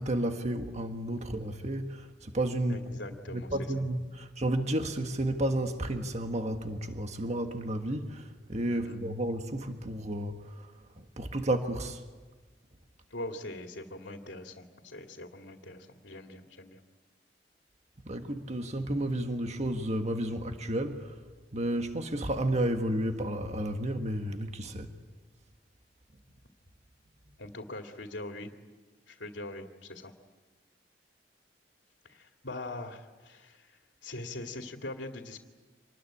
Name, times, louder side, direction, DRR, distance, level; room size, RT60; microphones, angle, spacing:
voice 1, 0.0-2.8 3.3-10.7 11.2-12.0 18.1-21.1 21.5-24.9, right 1 dB, 40° right, 1.6 m, -32 dB
voice 2, 2.7-3.7 8.7-9.0 13.1-16.8 27.4-28.5 29.1-30.1 32.0-35.4, left 2 dB, 85° left, 2.2 m, -42 dB
27.0 x 20.5 x 9.9 m
head